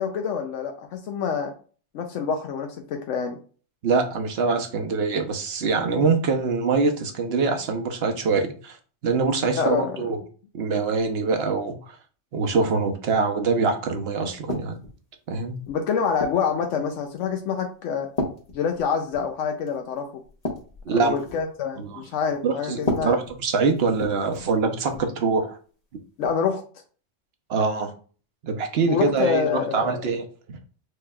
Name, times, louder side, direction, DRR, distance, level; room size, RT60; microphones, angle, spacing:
voice 1, 0.0-1.5 1.9-3.4 9.6-10.0 15.7-18.1 18.5-20.2 20.9-23.2 26.2-26.6 28.9-30.0, left 6 dB, 80° left, 5 dB, 0.9 m, -26 dB
voice 2, 3.8-8.8 9.0-10.2 10.5-12.0 12.3-14.8 15.3-15.5 20.9-21.2 21.8-22.0 22.4-25.6 27.5-27.9 28.4-30.6, right 4 dB, 60° right, 5 dB, 1.0 m, -24 dB
sound 1, 14.5-15.0 15.6-16.5 17.2-17.4 18.2-19.3 19.7-19.8 20.2-21.5 22.7-24.5 24.9-25.1 26.2-26.4, left 2 dB, 35° left, 1.0 m, -33 dB
6.4 x 3.1 x 2.3 m, 0.40 s
omnidirectional pair, 1.3 m